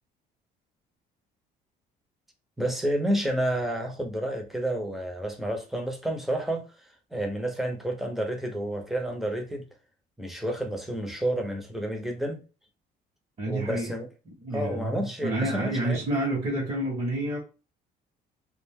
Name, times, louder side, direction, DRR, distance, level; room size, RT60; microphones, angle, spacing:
voice 1, 2.6-6.6 7.1-9.7 10.2-12.4 13.5-14.1 14.5-16.0, right 1 dB, ahead, 0.7 m, -30 dB
voice 2, 13.4-14.0 14.4-17.4, right 1 dB, 35° right, 1.0 m, -29 dB
2.4 x 2.2 x 3.5 m
cardioid pair, 110°, 17 cm